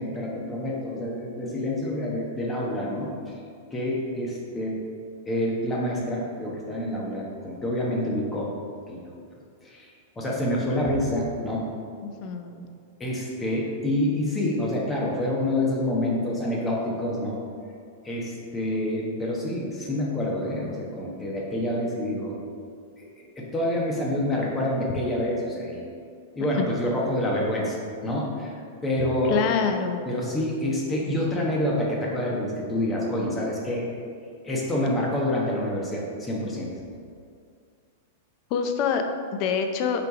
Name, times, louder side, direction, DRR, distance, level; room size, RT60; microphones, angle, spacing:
voice 1, 0.0-3.1 3.7-4.8 5.3-8.5 8.9-9.1 9.6-11.7 13.0-17.4 18.0-22.4 23.0-25.8 26.4-27.8 28.0-28.5 28.8-29.4 30.1-33.9 34.4-36.7, left 1 dB, 10° left, -3 dB, 1.1 m, -27 dB
voice 2, 12.0-12.7 29.3-30.0 38.5-40.1, left 6 dB, 40° left, 6 dB, 0.5 m, -26 dB
6.8 x 3.3 x 4.8 m, 2.3 s
supercardioid pair, 155°, 0 cm